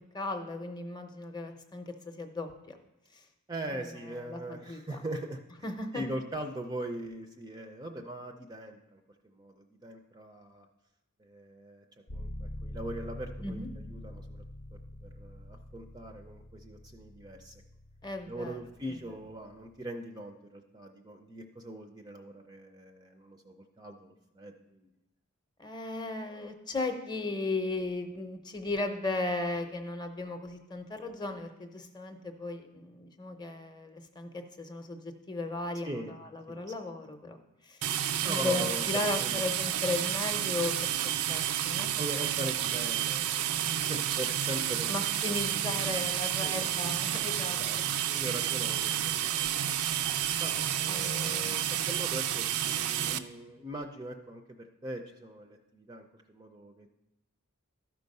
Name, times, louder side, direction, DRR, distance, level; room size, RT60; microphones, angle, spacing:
voice 1, 0.1-2.8 3.1-3.2 3.7-5.0 5.6-6.0 13.4-13.7 18.0-18.6 25.6-37.4 37.6-37.9 38.2-40.9 41.3-41.9 44.9-47.6 50.9-52.1 53.0-53.2, left 2 dB, 20° left, 6 dB, 0.6 m, -36 dB
voice 2, 3.5-5.4 5.9-10.7 11.2-11.8 12.1-13.6 13.9-14.3 15.0-17.5 18.2-24.9 35.8-36.1 36.5-36.7 38.2-38.9 39.2-39.4 42.0-44.9 45.3-45.4 46.4-46.7 47.4-47.8 48.1-49.7 50.4-56.9, right 1 dB, 20° right, 5 dB, 0.4 m, -41 dB
sound 1, 12.1-19.8, left 1 dB, 60° left, 0.6 m, -45 dB
sound 2, 37.8-53.2, right 10 dB, 80° right, 0.4 m, -30 dB
12.5 x 4.5 x 5.3 m, 0.97 s
head